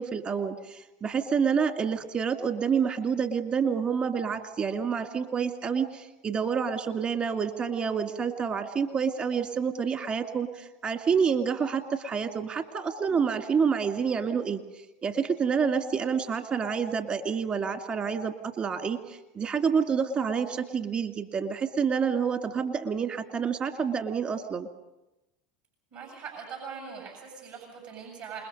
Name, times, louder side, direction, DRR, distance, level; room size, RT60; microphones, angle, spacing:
voice 1, 0.0-24.7, right 6 dB, 40° right, 6 dB, 2.1 m, -28 dB
voice 2, 25.9-28.5, right 6 dB, 65° right, 1 dB, 7.4 m, -41 dB
28.0 x 21.0 x 5.4 m, 0.98 s
hypercardioid pair, 85°, 3 cm